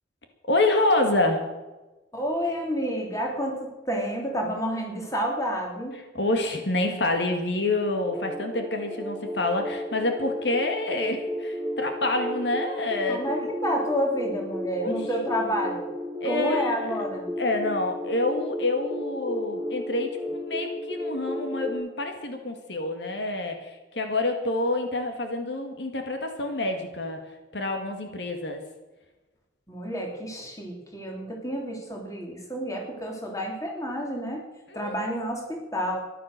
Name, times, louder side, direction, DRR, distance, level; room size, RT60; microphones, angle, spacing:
voice 1, 0.5-1.4 6.1-13.2 14.8-14.9 16.2-17.0 17.4-27.2 27.5-28.6 34.7-35.1, left 2 dB, 70° left, 5 dB, 1.9 m, -27 dB
voice 2, 2.1-6.0 13.1-15.9 16.2-17.3 29.7-34.5 34.7-36.0, equal, 15° left, 0 dB, 3.0 m, -29 dB
sound 1, 8.1-21.7, left 1 dB, ahead, 4.0 m, -33 dB
14.5 x 11.0 x 6.7 m, 1.1 s
head